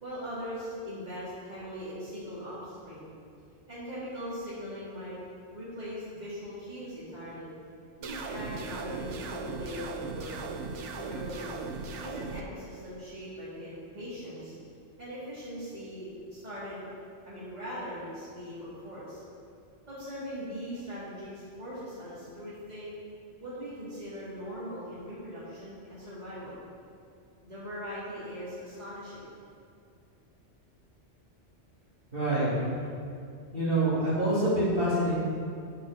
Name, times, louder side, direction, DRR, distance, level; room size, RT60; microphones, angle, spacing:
voice 1, 0.0-3.1 3.7-5.2 5.5-7.5 8.0-10.5 11.0-11.6 12.0-14.5 15.0-16.9 17.2-19.2 19.9-22.9 23.4-26.5 27.4-29.3, equal, 35° right, -11 dB, 2.8 m, -40 dB
sound 1, 8.0-12.4, right 4 dB, 80° right, 1.1 m, -38 dB
voice 2, 32.1-32.8 33.5-35.1, right 1 dB, 50° right, -9 dB, 3.3 m, -26 dB
9.9 x 6.5 x 6.6 m, 2.4 s
omnidirectional pair, 1.2 m